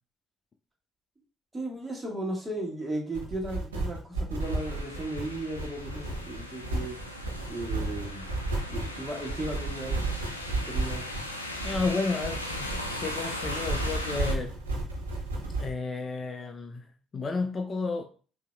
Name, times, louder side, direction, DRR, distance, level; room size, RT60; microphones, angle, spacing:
voice 1, 1.5-7.0 7.5-8.3 8.7-10.0 10.7-11.1, right 1 dB, 15° right, -1 dB, 1.8 m, -35 dB
sound 1, 3.1-15.7, right 2 dB, 80° right, 0.8 m, -33 dB
sound 2, 4.4-14.3, left 1 dB, 90° left, 0.4 m, -38 dB
voice 2, 11.6-14.7 15.6-16.9 17.1-18.1, left 3 dB, 35° left, 6 dB, 0.5 m, -32 dB
5.6 x 2.8 x 2.4 m, 0.38 s
figure-of-eight pair, 50°, 0 cm